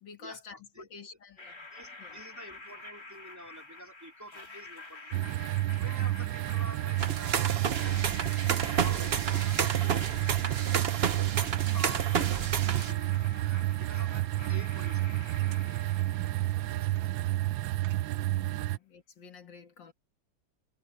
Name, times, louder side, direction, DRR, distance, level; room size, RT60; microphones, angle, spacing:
voice 1, 0.0-1.6 2.0-2.2 18.4-19.9, left 5 dB, 75° left, 2.5 m, -50 dB
sound 1, 1.4-17.3, left 2 dB, 50° left, 4.9 m, -48 dB
voice 2, 1.7-5.3 5.8-8.1 8.6-11.3 11.7-15.2 16.5-17.4 18.6-18.7, equal, 10° right, 3.4 m, -49 dB
sound 2, 5.1-18.8, right 16 dB, 90° right, 1.4 m, -30 dB
sound 3, 7.0-12.9, right 7 dB, 45° right, 0.8 m, -31 dB
omnidirectional pair, 2.0 m